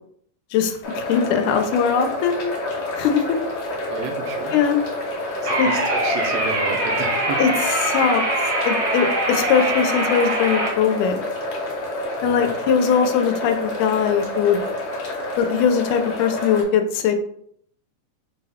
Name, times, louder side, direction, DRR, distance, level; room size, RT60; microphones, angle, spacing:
voice 1, 0.5-2.4 3.0-3.2 4.5-4.8 5.6-5.7 7.4-7.5 7.8-8.2 8.6-11.2 12.2-14.6 15.4-17.2, left 7 dB, 80° left, 6 dB, 2.0 m, -20 dB
sound 1, 0.8-16.6, left 1 dB, 65° left, 1.2 m, -29 dB
voice 2, 3.9-4.5 5.4-7.4 12.2-12.5, right 5 dB, 80° right, 3 dB, 1.5 m, -31 dB
sound 2, 5.5-10.7, right 1 dB, 55° right, 1.1 m, -23 dB
5.5 x 2.2 x 3.4 m, 0.67 s
omnidirectional pair, 3.6 m